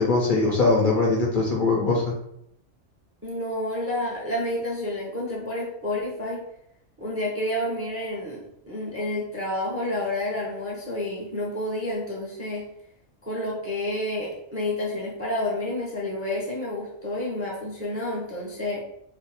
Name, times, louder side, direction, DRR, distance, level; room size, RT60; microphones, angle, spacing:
voice 1, 0.0-2.2, left 3 dB, 55° left, -2 dB, 0.7 m, -21 dB
voice 2, 3.2-6.4 7.0-12.7 13.2-18.8, left 1 dB, 15° right, -4 dB, 0.5 m, -29 dB
2.5 x 2.2 x 4.0 m, 0.75 s
omnidirectional pair, 1.2 m